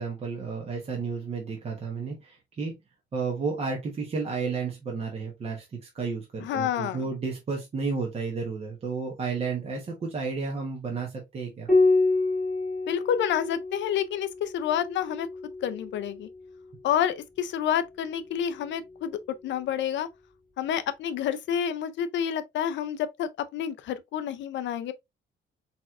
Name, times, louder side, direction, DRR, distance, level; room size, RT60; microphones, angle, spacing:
voice 1, 0.0-2.8 3.1-11.7, right 4 dB, 30° right, 1.0 m, -32 dB
voice 2, 6.4-7.0 12.9-15.3 15.6-16.3 16.8-20.1 20.6-24.9, left 9 dB, 70° left, 0.4 m, -29 dB
Piano, 11.7-16.5 18.2-19.0, left 3 dB, ahead, 1.6 m, -28 dB
4.4 x 4.1 x 2.4 m
cardioid pair, 170°, 20 cm